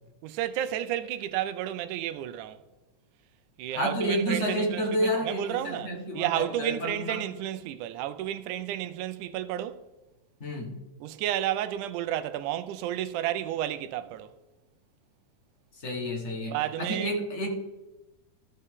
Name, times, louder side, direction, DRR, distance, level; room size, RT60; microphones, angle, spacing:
voice 1, 0.2-2.6 3.6-9.8 11.0-14.3 16.5-17.1, right 12 dB, 90° right, 2.1 m, -32 dB
voice 2, 3.7-7.2 10.4-10.7 15.7-17.5, equal, 55° left, 0.7 m, -30 dB
14.0 x 5.5 x 3.6 m
omnidirectional pair, 3.5 m